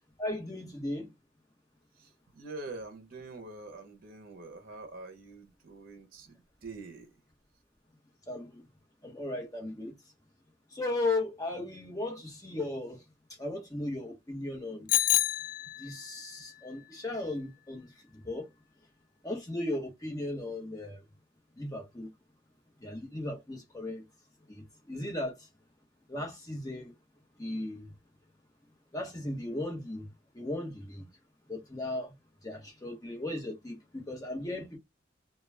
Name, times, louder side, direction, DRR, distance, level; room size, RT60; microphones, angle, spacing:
voice 1, 0.2-1.1 8.3-8.6 9.0-9.9 10.7-13.0 13.4-14.9 15.8-17.9 18.2-18.5 19.2-21.0 21.6-22.1 22.8-24.0 24.5-25.3 26.1-26.9 27.4-27.9 28.9-30.1 30.3-31.1 31.5-32.1 32.4-34.8, left 2 dB, 20° left, 0.9 m, -36 dB
voice 2, 2.0-6.4 6.6-7.1, right 3 dB, 50° right, 0.7 m, -45 dB
Bicycle bell, 14.9-16.1, left 12 dB, 45° left, 0.3 m, -28 dB
2.3 x 2.2 x 3.1 m
head